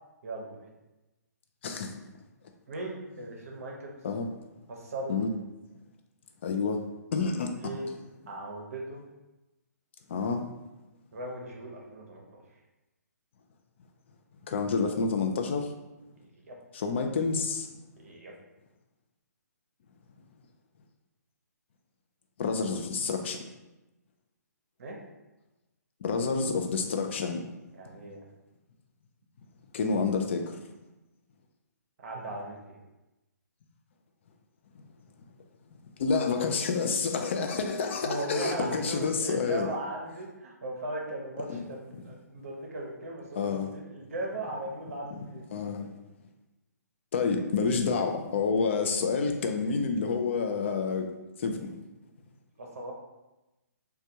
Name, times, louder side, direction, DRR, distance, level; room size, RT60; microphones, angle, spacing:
voice 1, 0.2-0.7 2.7-4.0 4.7-5.2 7.6-7.9 8.3-9.0 11.1-12.4 16.2-16.6 18.0-18.3 24.8-25.0 27.7-28.2 32.0-32.8 37.8-45.4 52.6-52.9, right 2 dB, 50° right, 0 dB, 0.7 m, -38 dB
voice 2, 1.6-2.0 4.0-4.3 5.1-5.3 6.4-6.8 7.1-7.5 10.1-10.5 14.5-15.7 16.7-17.7 22.4-23.4 26.0-27.4 29.7-30.6 36.0-39.7 41.5-41.6 43.4-43.7 45.5-45.9 47.1-51.1 51.4-51.7, left 4 dB, 40° left, 5 dB, 0.3 m, -28 dB
3.3 x 2.2 x 2.7 m, 1.0 s
figure-of-eight pair, 135°, 10 cm